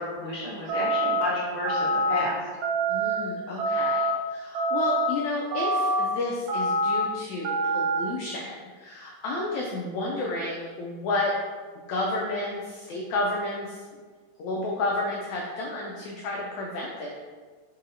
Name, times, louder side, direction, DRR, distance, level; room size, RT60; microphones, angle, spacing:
voice 1, 0.0-2.3, left 1 dB, 70° left, -8 dB, 1.3 m, -31 dB
sound 1, 0.7-1.2 1.6-2.2 2.6-3.2 3.6-4.1 4.5-5.1 5.5-6.0 6.5-7.0 7.4-8.0, right 1 dB, 85° right, 1.3 m, -25 dB
voice 2, 2.9-11.3 11.9-13.8 14.4-17.1, left 2 dB, 90° left, -1 dB, 1.6 m, -31 dB
4.7 x 4.1 x 2.6 m, 1.5 s
omnidirectional pair, 3.8 m